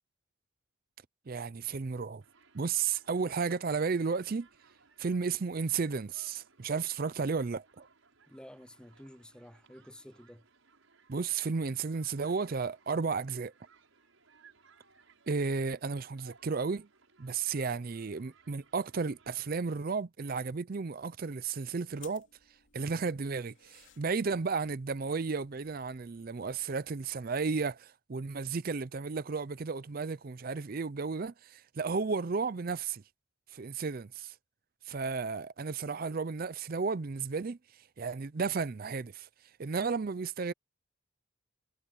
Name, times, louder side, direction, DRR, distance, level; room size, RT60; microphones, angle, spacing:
voice 1, 1.3-2.2 2.5-4.5 5.0-7.9 11.1-13.5 15.3-16.9 17.2-22.3 22.7-33.0 33.5-34.3 34.9-37.6 38.0-39.3 39.6-40.5, right 4 dB, 45° right, 0.5 m, -33 dB
Human group actions, 2.2-19.5, right 4 dB, 80° right, 6.4 m, -64 dB
voice 2, 8.3-10.5, equal, 5° left, 0.6 m, -51 dB
sound 1, 21.9-27.7, left 10 dB, 65° left, 3.1 m, -62 dB
head